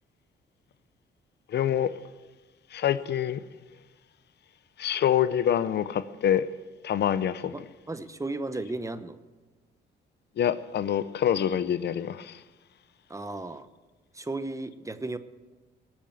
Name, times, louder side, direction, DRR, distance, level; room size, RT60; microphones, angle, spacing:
voice 1, 1.5-1.9 2.7-3.4 4.8-6.5 6.8-7.5 10.4-12.4, left 10 dB, 60° left, 0.6 m, -26 dB
voice 2, 7.9-9.2 13.1-13.7 14.1-15.2, right 2 dB, 15° right, 0.9 m, -34 dB
18.5 x 8.7 x 7.8 m
cardioid pair, 90°, 20 cm